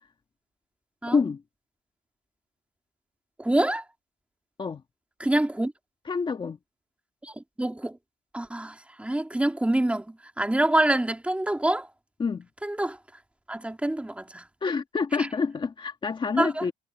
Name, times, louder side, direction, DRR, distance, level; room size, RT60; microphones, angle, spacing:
voice 1, 1.1-1.4 4.6-4.8 6.1-6.6 12.2-12.5 14.6-16.7, left 5 dB, 30° left, 1.7 m, -27 dB
voice 2, 3.4-3.9 5.2-5.7 7.2-8.0 8.3-11.9 12.6-13.0 13.5-14.5 15.2-15.3 16.4-16.7, right 1 dB, 5° right, 2.8 m, -26 dB
cardioid pair, 110°, 17 cm